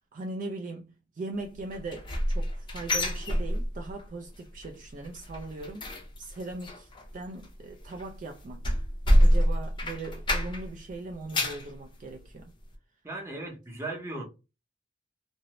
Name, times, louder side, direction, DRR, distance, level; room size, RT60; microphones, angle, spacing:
voice 1, 0.1-5.9 6.2-8.7 9.2-12.5, right 2 dB, 40° right, 0.3 m, -39 dB
sound 1, 1.7-4.0 4.3-4.7 5.0-10.8 11.1-11.7 12.2-12.3 12.7-12.8, equal, 25° left, 0.5 m, -27 dB
voice 2, 13.0-14.2, right 2 dB, 15° right, 0.7 m, -37 dB
2.5 x 2.0 x 2.9 m
head